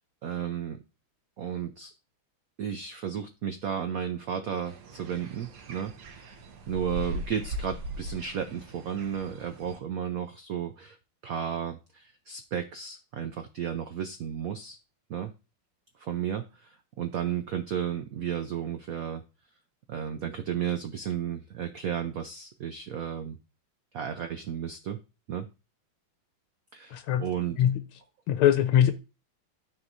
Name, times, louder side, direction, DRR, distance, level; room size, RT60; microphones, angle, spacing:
voice 1, 0.2-0.8 1.4-1.9 2.6-6.3 6.7-11.0 11.2-14.8 15.1-15.3 16.0-19.2 19.9-23.4 23.9-25.0 25.3-25.5 26.7-27.7, right 8 dB, 90° right, 0.7 m, -33 dB
sound 1, 4.7-9.8, right 1 dB, 60° right, 1.4 m, -39 dB
voice 2, 26.9-27.3 27.6-27.8 28.3-28.9, left 10 dB, 85° left, 1.6 m, -22 dB
13.0 x 4.6 x 2.6 m
omnidirectional pair, 2.3 m